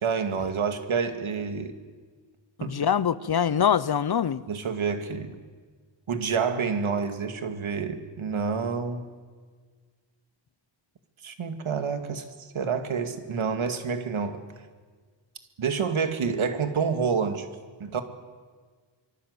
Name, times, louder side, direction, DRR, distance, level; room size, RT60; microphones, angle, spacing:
voice 1, 0.0-1.7 2.6-2.7 4.5-5.4 6.1-9.1 11.2-12.2 12.5-14.4 15.6-17.5 17.8-18.0, right 5 dB, 80° right, 2.2 m, -28 dB
voice 2, 2.6-4.4, left 8 dB, 50° left, 0.7 m, -24 dB
25.0 x 23.5 x 8.1 m
wide cardioid pair, 155°, 48 cm